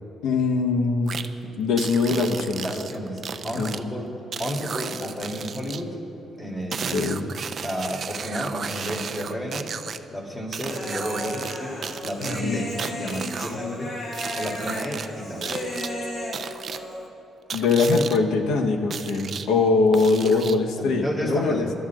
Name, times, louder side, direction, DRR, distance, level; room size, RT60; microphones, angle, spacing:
voice 1, 0.2-1.1 1.4-2.7 3.5-3.8 6.9-7.3 12.2-12.7 17.5-21.7, left 4 dB, 85° left, 3 dB, 1.1 m, -22 dB
sound 1, 1.1-1.3 1.8-3.8 4.3-5.8 6.7-10.0 10.5-11.6 11.8-13.6 14.1-15.1 15.4-15.9 16.3-16.8 17.5-18.2 18.9-19.5 19.9-20.7, right 6 dB, 50° right, 0.5 m, -34 dB
voice 2, 2.6-4.1 4.4-6.0 6.4-7.0 7.6-9.7 10.1-15.5 20.2-20.3 20.8-21.7, equal, 15° left, -1 dB, 3.0 m, -32 dB
Human voice, 10.7-17.1, left 1 dB, 50° left, 2.1 m, -34 dB
23.5 x 12.5 x 2.5 m, 2.9 s
cardioid pair, 90°, 0 cm